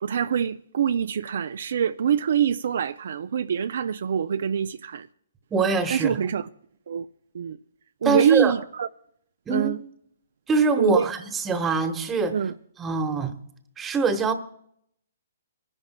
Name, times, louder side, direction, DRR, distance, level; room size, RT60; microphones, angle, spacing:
voice 1, 0.0-5.1 5.9-6.5 6.9-7.1 7.3-7.6 8.0-8.9 9.5-9.8 10.8-11.1 12.3-12.5, right 8 dB, 65° right, 0.4 m, -24 dB
voice 2, 5.5-6.2 8.0-8.5 9.5-9.7 10.5-11.2 11.4-12.3 12.8-13.3 13.8-14.3, right 4 dB, 15° right, 1.1 m, -23 dB
29.0 x 11.0 x 2.2 m
hypercardioid pair, 135°, 0 cm